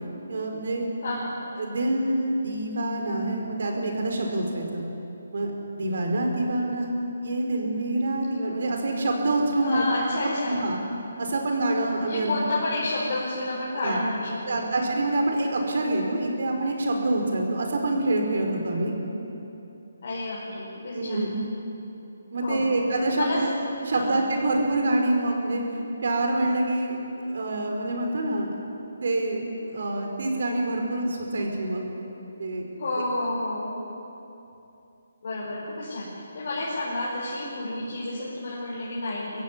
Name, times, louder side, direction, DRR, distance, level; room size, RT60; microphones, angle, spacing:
voice 1, 0.3-0.9 1.5-4.8 5.3-5.5 5.8-6.9 7.2-9.8 10.4-10.8 11.2-12.3 13.8-14.0 14.5-18.9 20.9-21.3 22.3-23.5 23.8-25.6 26.0-27.0 27.3-28.7 29.0-31.8 32.4-32.7, right 2 dB, 60° right, 2 dB, 4.8 m, -26 dB
voice 2, 1.0-1.4 9.6-10.7 12.0-14.6 20.0-21.3 22.4-22.8 23.1-23.4 23.9-24.2 32.8-33.8 35.2-39.4, left 2 dB, 50° left, -7 dB, 5.1 m, -30 dB
24.0 x 15.5 x 9.9 m, 2.9 s
hypercardioid pair, 170°, 0 cm